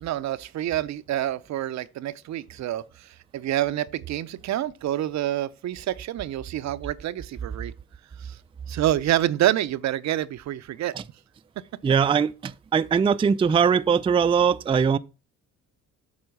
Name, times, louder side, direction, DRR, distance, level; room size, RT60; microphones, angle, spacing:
voice 1, 0.0-7.7 8.2-8.4 8.7-10.9, right 13 dB, 65° right, 0.6 m, -27 dB
voice 2, 11.8-15.0, right 6 dB, 20° right, 0.3 m, -21 dB
7.9 x 4.4 x 6.9 m
cardioid pair, 90°, 30 cm